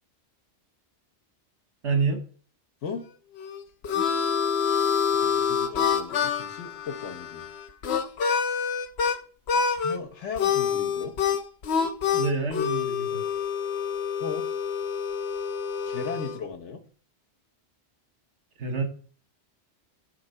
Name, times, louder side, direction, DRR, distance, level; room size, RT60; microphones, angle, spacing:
voice 1, 1.8-2.2 12.2-13.2 18.6-18.8, right 4 dB, 80° right, 1.5 m, -27 dB
Harmonica, 3.4-9.2 9.5-10.0 10.4-16.4, left 7 dB, 70° left, 1.0 m, -27 dB
voice 2, 5.1-7.4 9.8-11.2 14.2-14.5 15.9-16.8, left 6 dB, 90° left, 1.3 m, -37 dB
8.8 x 3.9 x 5.4 m
omnidirectional pair, 1.2 m